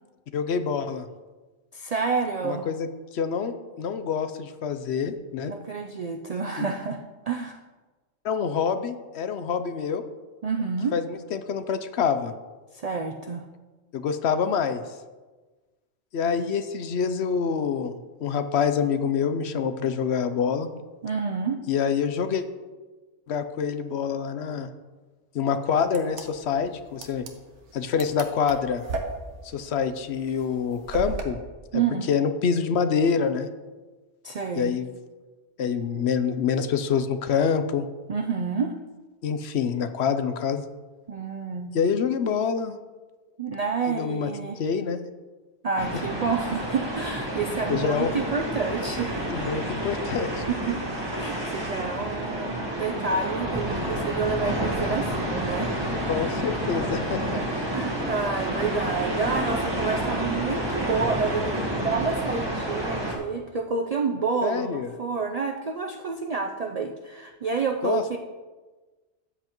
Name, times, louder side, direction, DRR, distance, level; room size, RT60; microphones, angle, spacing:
voice 1, 0.3-1.1 2.4-2.9 3.1-5.5 6.6-6.7 8.2-10.0 10.9-12.3 13.9-14.8 16.1-20.7 21.7-22.4 23.3-24.7 25.3-27.2 27.7-28.8 29.4-31.4 32.1-33.5 34.6-34.9 35.6-37.8 39.2-40.6 41.7-42.7 43.9-44.3 44.6-45.0 47.7-48.1 49.3-50.4 56.1-57.4 64.4-64.9 67.8-68.0, left 6 dB, 70° left, 10 dB, 0.9 m, -26 dB
voice 2, 1.7-2.7 5.5-7.6 10.4-10.9 12.7-13.4 21.0-21.6 31.7-32.1 34.2-34.7 38.1-38.7 41.1-41.7 43.4-44.6 45.6-49.2 50.7-50.8 51.1-56.1 57.3-68.2, right 5 dB, 50° right, 4 dB, 0.4 m, -29 dB
sound 1, 25.8-31.2, right 3 dB, 85° right, 1.3 m, -36 dB
sound 2, 45.8-63.2, right 1 dB, 20° right, 1.5 m, -29 dB
13.0 x 7.8 x 3.0 m, 1.3 s
omnidirectional pair, 1.2 m